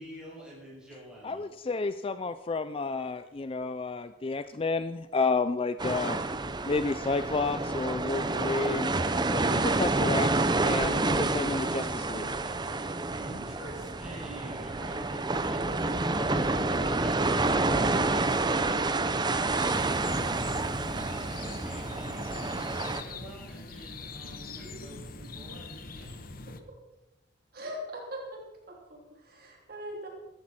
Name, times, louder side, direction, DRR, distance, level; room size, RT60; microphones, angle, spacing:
voice 1, 0.0-1.5 12.4-20.5 21.0-26.3, right 1 dB, 5° right, -6 dB, 6.8 m, -47 dB
voice 2, 1.2-6.2 6.7-9.0 9.3-12.3, left 3 dB, 30° left, 12 dB, 0.4 m, -31 dB
sound 1, 5.8-23.0, right 2 dB, 20° right, 0.7 m, -28 dB
sound 2, 19.6-26.6, left 3 dB, 50° left, 1.1 m, -43 dB
voice 3, 27.5-28.4 28.7-30.1, equal, 50° right, -1 dB, 3.3 m, -41 dB
15.5 x 13.5 x 4.3 m, 0.99 s
head